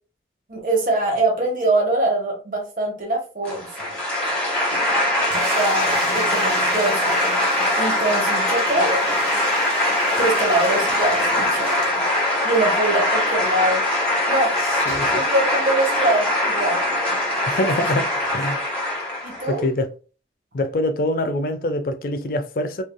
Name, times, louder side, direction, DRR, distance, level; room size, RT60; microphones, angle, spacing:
voice 1, 0.5-4.0 5.3-7.2 7.8-9.0 10.2-12.0 12.4-13.8 14.3-14.5 15.1-16.8 17.6-17.7 19.2-19.7, right 2 dB, 45° right, 1.0 m, -23 dB
sound 1, 3.4-19.5, left 1 dB, 5° left, 1.0 m, -22 dB
sound 2, 5.3-12.5 12.8-12.9 13.1-13.2 14.9-15.2, right 2 dB, 65° right, 1.2 m, -35 dB
voice 2, 14.9-15.2 17.5-18.7 19.5-19.9 20.5-22.8, left 1 dB, 50° left, 0.4 m, -24 dB
3.1 x 2.5 x 2.2 m
head